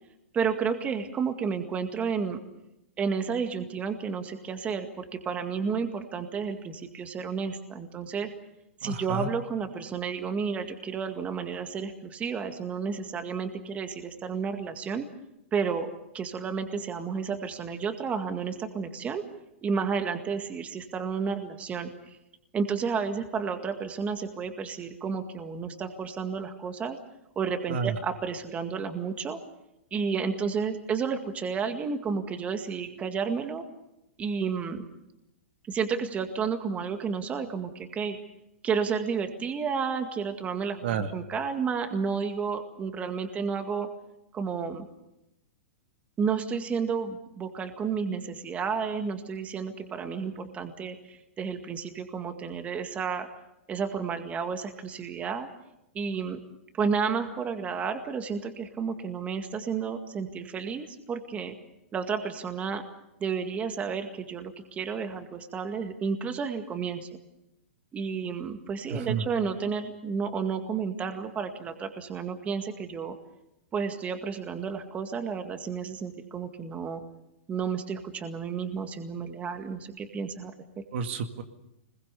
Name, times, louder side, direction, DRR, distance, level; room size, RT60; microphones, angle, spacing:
voice 1, 0.3-2.4 3.0-8.3 8.8-15.1 15.5-19.2 19.6-22.2 22.5-27.0 27.4-29.4 29.9-33.7 34.2-34.9 35.7-38.2 38.6-43.9 44.3-44.9 46.2-53.3 53.7-55.5 55.9-56.4 56.7-61.5 61.9-62.8 63.2-67.1 67.9-73.2 73.7-77.0 77.5-80.8, right 6 dB, 20° right, 7 dB, 2.0 m, -31 dB
voice 2, 8.8-9.3 27.7-28.0 40.8-41.1 68.9-69.2 80.9-81.4, right 6 dB, 60° right, 7 dB, 2.1 m, -30 dB
25.5 x 21.5 x 6.9 m, 0.86 s
hypercardioid pair, 135°, 7 cm